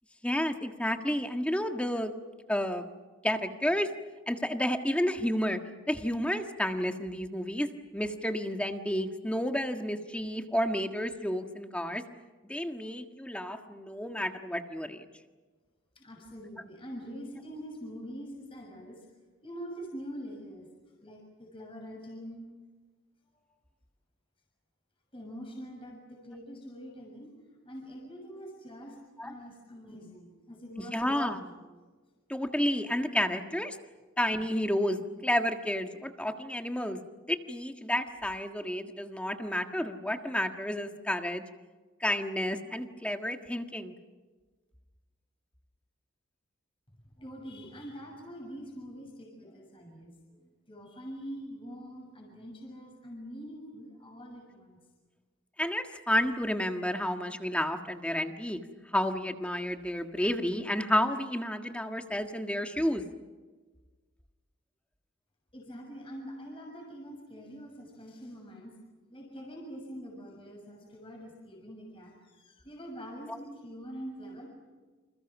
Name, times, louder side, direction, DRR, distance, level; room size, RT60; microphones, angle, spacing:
voice 1, 0.2-2.1 2.5-2.9 3.2-3.9 4.3-5.6 5.9-12.0 12.5-15.1 29.2-29.3 30.8-31.4 32.3-33.8 34.2-37.0 37.3-41.4 42.0-43.9 55.6-58.6 58.9-63.0 73.3-73.4, equal, 5° left, 5 dB, 1.6 m, -31 dB
voice 2, 15.9-19.0 19.4-20.7 21.0-22.5 25.1-27.3 27.6-31.5 47.2-50.4 50.7-54.8 65.5-68.7 69.1-74.5, equal, 25° left, 0 dB, 6.7 m, -44 dB
29.5 x 27.5 x 6.1 m, 1.3 s
head